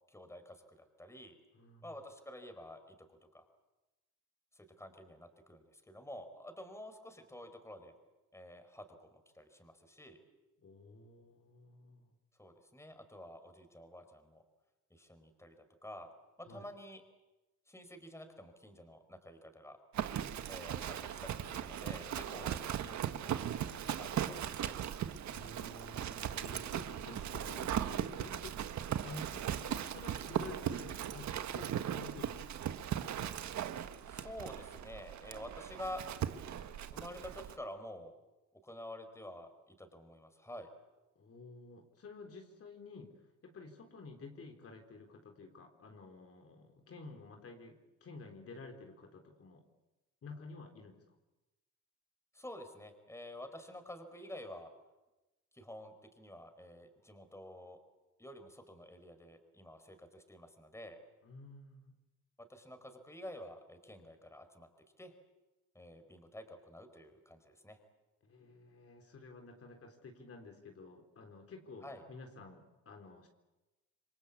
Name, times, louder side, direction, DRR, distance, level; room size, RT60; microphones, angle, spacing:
voice 1, 0.1-1.4 1.8-3.5 4.5-7.9 8.3-10.2 12.4-14.4 14.9-16.1 16.4-17.0 17.7-19.8 20.5-23.5 23.9-24.8 34.0-36.0 36.9-38.1 38.6-40.7 52.3-54.7 55.5-57.8 58.2-61.0 62.4-64.7 65.0-65.1 65.7-67.8 71.8-72.0, left 1 dB, 10° left, 8 dB, 4.6 m, -49 dB
voice 2, 1.5-1.9 10.6-12.1 16.4-16.7 25.3-32.6 41.2-49.6 50.2-51.0 61.2-61.9 68.2-73.3, left 3 dB, 50° left, 3 dB, 4.0 m, -52 dB
Livestock farm animals working animals, 19.9-37.5, right 10 dB, 65° right, 1.5 m, -38 dB
28.5 x 22.5 x 8.5 m, 1.1 s
cardioid pair, 90°, 30 cm